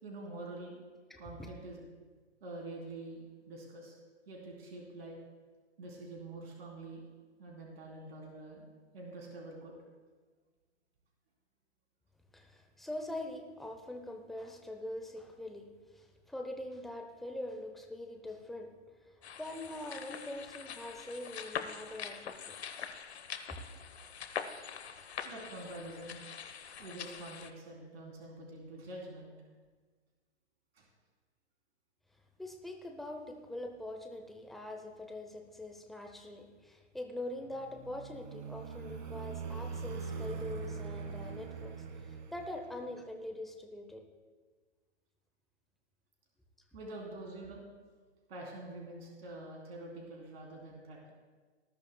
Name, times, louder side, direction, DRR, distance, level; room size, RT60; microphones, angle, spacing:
voice 1, 0.0-0.8 1.2-1.8 2.4-3.9 4.3-5.2 5.8-7.1 7.4-8.7 8.9-9.7 25.2-26.2 26.8-29.3 30.7-30.8 46.7-47.6 48.3-51.1, right 2 dB, 55° right, -1 dB, 3.4 m, -46 dB
voice 2, 1.1-1.5 12.3-18.7 19.0-22.6 32.4-44.0, left 1 dB, ahead, 3 dB, 0.6 m, -43 dB
sound 1, 19.2-27.5, left 7 dB, 65° left, 1.0 m, -44 dB
sound 2, 37.4-43.1, right 5 dB, 40° right, 1.4 m, -42 dB
19.0 x 12.0 x 2.2 m, 1.4 s
hypercardioid pair, 135°, 35 cm